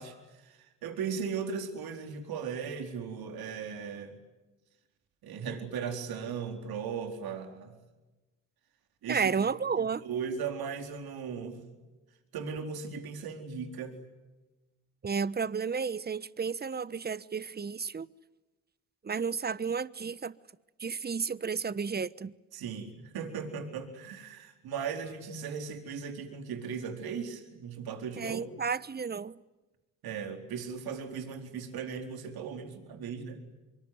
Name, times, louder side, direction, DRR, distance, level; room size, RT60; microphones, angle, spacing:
voice 1, 0.0-4.2 5.2-7.8 9.0-9.3 9.8-11.7 12.3-14.0 22.5-28.4 30.0-33.4, right 6 dB, 65° right, 4.4 m, -37 dB
voice 2, 9.1-10.0 15.0-18.1 19.0-20.3 20.8-22.3 28.2-29.4, right 5 dB, 25° right, 1.1 m, -32 dB
24.5 x 24.0 x 9.6 m
hypercardioid pair, 55°, 39 cm